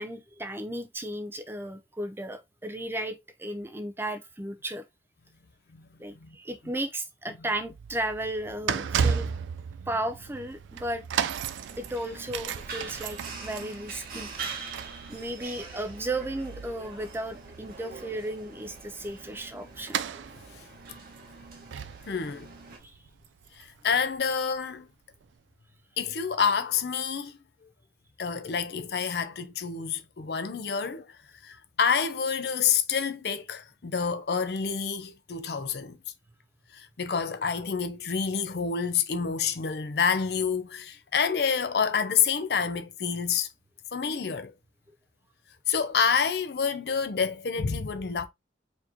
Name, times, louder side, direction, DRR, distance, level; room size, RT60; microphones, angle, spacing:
voice 1, 0.0-4.8 6.0-9.3 9.9-11.1 11.8-14.3 14.8-20.0 22.8-23.0, right 1 dB, 15° right, 0.4 m, -35 dB
sound 1, 7.6-24.6 25.2-25.3, right 7 dB, 90° right, 0.4 m, -35 dB
sound 2, 11.3-22.8, right 4 dB, 50° right, 1.2 m, -43 dB
voice 2, 22.0-22.5 23.6-24.9 26.0-27.4 28.2-31.1 31.4-36.0 36.7-43.5 43.9-44.5 45.7-48.3, left 6 dB, 60° left, 0.5 m, -28 dB
4.3 x 2.9 x 2.6 m
head